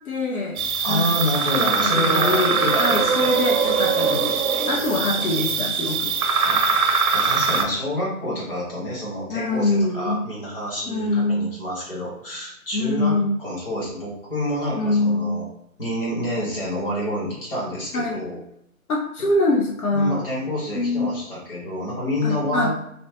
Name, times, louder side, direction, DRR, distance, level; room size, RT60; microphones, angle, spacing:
voice 1, 0.1-1.2 1.6-4.2 4.7-6.1 9.3-10.2 10.9-11.5 12.7-13.3 14.8-15.4 17.9-18.2 18.9-20.2 20.7-21.2 22.2-22.7, left 2 dB, 80° left, -1 dB, 0.7 m, -24 dB
sound 1, 0.6-7.6, right 5 dB, 80° right, 0.6 m, -22 dB
voice 2, 0.8-3.3 5.2-5.3 6.4-15.4 15.8-18.4 19.9-22.7, left 1 dB, 40° left, -6 dB, 1.2 m, -28 dB
2.9 x 2.0 x 2.8 m, 0.74 s
hypercardioid pair, 175°, 43 cm